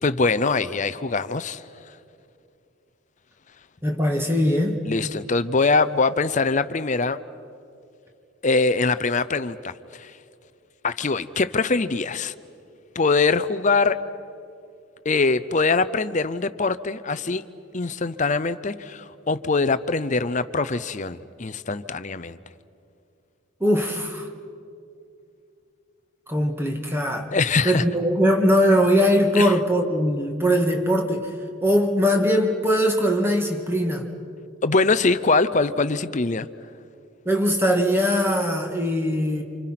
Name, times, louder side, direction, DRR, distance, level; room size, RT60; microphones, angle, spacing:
voice 1, 0.0-1.6 4.9-7.2 8.4-10.1 10.8-12.3 13.0-14.0 15.0-17.4 17.7-22.4 27.3-27.8 29.3-29.5 34.6-36.5, left 3 dB, 35° left, 14 dB, 0.6 m, -23 dB
voice 2, 3.8-4.8 23.6-24.3 26.3-27.3 27.6-31.3 31.6-34.1 37.3-39.4, equal, 10° right, 2 dB, 2.1 m, -21 dB
29.5 x 27.0 x 5.9 m, 2.5 s
head